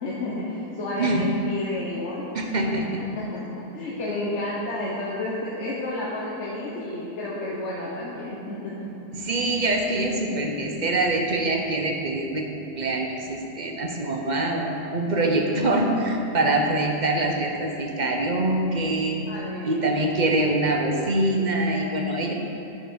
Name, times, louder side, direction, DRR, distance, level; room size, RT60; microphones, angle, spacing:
voice 1, 0.0-2.3 3.1-9.0 19.3-19.9, left 2 dB, 45° left, -6 dB, 1.2 m, -31 dB
voice 2, 2.3-2.9 9.1-12.5 12.8-19.2 19.6-22.3, right 2 dB, 40° right, 1 dB, 0.6 m, -24 dB
10.0 x 5.9 x 6.2 m, 2.9 s
omnidirectional pair, 1.8 m